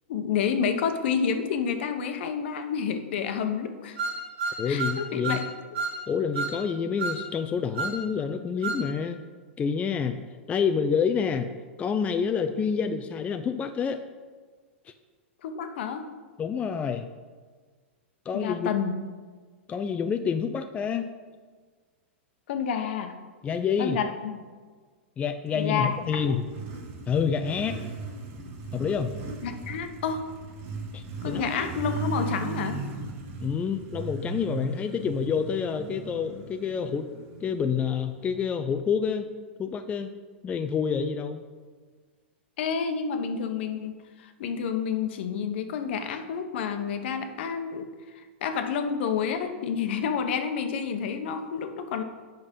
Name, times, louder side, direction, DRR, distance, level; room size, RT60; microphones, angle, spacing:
voice 1, 0.1-4.0 4.7-5.4 15.4-16.1 18.3-19.0 22.5-23.2 23.8-24.4 25.5-26.3 29.4-30.2 31.2-32.8 42.6-47.9 48.1-52.0, left 6 dB, 60° left, 7 dB, 0.9 m, -29 dB
sound 1, 4.0-5.5 5.7-6.0 6.3-6.6 7.0-7.2 7.7-8.0 8.6-8.8, right 4 dB, 75° right, 1.9 m, -30 dB
voice 2, 4.6-5.4 6.1-9.2 9.6-10.2 10.5-11.5 11.8-14.0 16.4-17.1 18.3-18.7 19.7-21.1 23.4-24.0 25.2-26.4 27.1-27.8 28.7-29.1 30.9-31.7 33.4-37.1 37.4-39.3 39.6-40.1 40.4-41.4, left 6 dB, 20° left, 7 dB, 0.4 m, -28 dB
Motorcycle, 25.6-38.3, right 4 dB, 40° right, 1.3 m, -37 dB
8.3 x 5.2 x 5.3 m, 1.5 s
hypercardioid pair, 120°, 7 cm